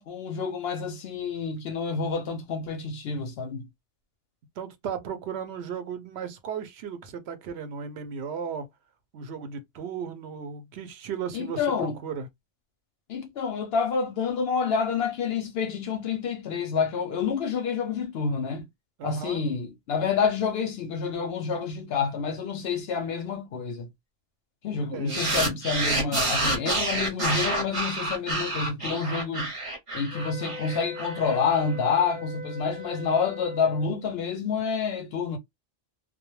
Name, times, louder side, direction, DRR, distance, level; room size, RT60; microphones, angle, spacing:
voice 1, 0.0-3.7 11.3-12.0 13.1-18.7 19.0-23.9 24.6-29.5 29.9-35.4, left 5 dB, 65° left, 0.7 m, -28 dB
voice 2, 4.6-8.7 9.1-12.3 19.0-19.4 24.9-25.2, right 6 dB, 65° right, 0.8 m, -35 dB
sound 1, 25.1-31.6, right 2 dB, 30° right, 0.7 m, -28 dB
sound 2, 30.1-34.0, left 4 dB, 5° left, 0.8 m, -40 dB
2.2 x 2.1 x 3.0 m
omnidirectional pair, 1.3 m